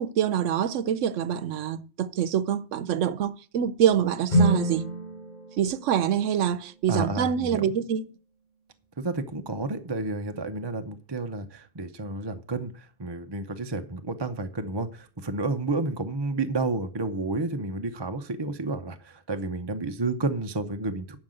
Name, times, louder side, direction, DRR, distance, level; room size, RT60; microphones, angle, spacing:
voice 1, 0.0-4.9 5.6-8.1, right 9 dB, 85° right, 1.0 m, -25 dB
sound 1, 4.3-8.3, right 1 dB, 35° left, 4.4 m, -29 dB
voice 2, 6.9-7.6 9.0-21.2, right 3 dB, 25° right, 0.7 m, -31 dB
11.5 x 5.3 x 7.8 m
omnidirectional pair, 1.2 m